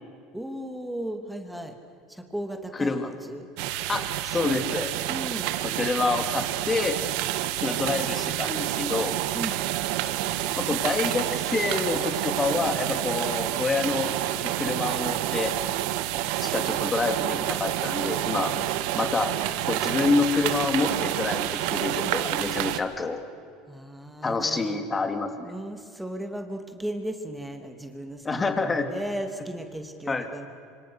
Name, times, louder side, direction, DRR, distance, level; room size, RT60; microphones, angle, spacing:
voice 1, 0.3-1.7 2.1-3.5 5.1-5.5 9.3-9.6 18.6-18.7 23.7-24.8 25.4-30.5, right 1 dB, 5° right, 5 dB, 2.8 m, -36 dB
voice 2, 2.7-3.1 3.9-4.9 5.6-7.0 7.6-9.1 10.6-14.1 14.4-15.5 16.4-18.5 18.9-19.3 19.7-23.2 24.2-25.5 28.2-28.9 30.1-30.3, left 3 dB, 20° left, 7 dB, 3.0 m, -27 dB
sound 1, 3.6-22.8, right 14 dB, 70° right, 1.4 m, -28 dB
27.0 x 25.5 x 6.6 m, 2.4 s
supercardioid pair, 95°, 0 cm